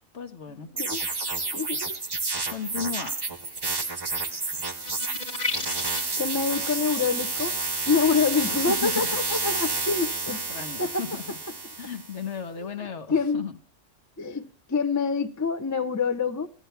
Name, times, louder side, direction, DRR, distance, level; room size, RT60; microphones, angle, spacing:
voice 1, 0.1-0.7 2.5-3.1 8.7-9.1 10.5-11.4 11.8-13.5, left 7 dB, 60° left, 8 dB, 1.5 m, -35 dB
sound 1, 0.8-12.2, right 3 dB, 20° right, 0.8 m, -30 dB
voice 2, 1.5-1.9 6.2-7.6 7.9-11.0 13.1-13.4 14.2-16.5, left 5 dB, 20° left, 9 dB, 0.6 m, -26 dB
sound 2, 4.8-6.2, left 2 dB, 35° left, 1.4 m, -32 dB
15.0 x 9.7 x 3.3 m, 0.42 s
omnidirectional pair, 1.4 m